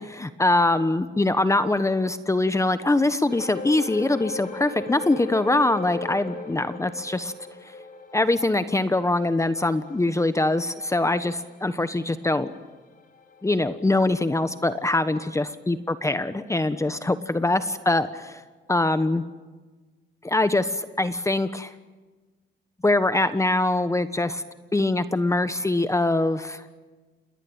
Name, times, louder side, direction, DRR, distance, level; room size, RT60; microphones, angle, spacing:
voice 1, 0.0-7.3 8.1-12.5 13.4-18.4 18.7-19.2 20.2-21.7 22.8-24.4 24.7-26.6, left 2 dB, 15° left, 11 dB, 1.2 m, -23 dB
sound 1, 3.3-16.0 16.3-16.5 17.1-17.2, left 3 dB, 45° left, 4.9 m, -40 dB
28.5 x 21.0 x 8.9 m, 1.3 s
cardioid pair, 90°, 20 cm